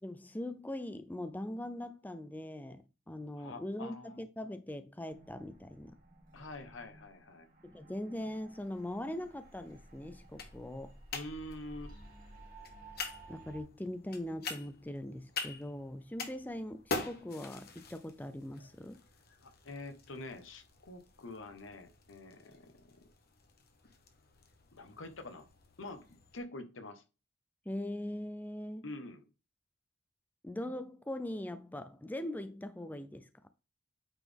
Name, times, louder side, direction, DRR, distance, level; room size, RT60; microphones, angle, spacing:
voice 1, 0.0-6.0 7.6-11.0 13.3-19.0 27.7-28.9 30.4-33.3, left 1 dB, 10° left, 0.5 m, -41 dB
voice 2, 3.3-4.2 6.3-7.5 11.1-11.9 19.4-23.0 24.7-25.5 25.8-27.0 28.8-29.3, left 2 dB, 85° left, 1.2 m, -46 dB
sound 1, 5.1-13.6, right 2 dB, 45° right, 2.0 m, -55 dB
sound 2, 8.5-26.4, left 4 dB, 55° left, 1.4 m, -46 dB
8.8 x 4.1 x 3.5 m
head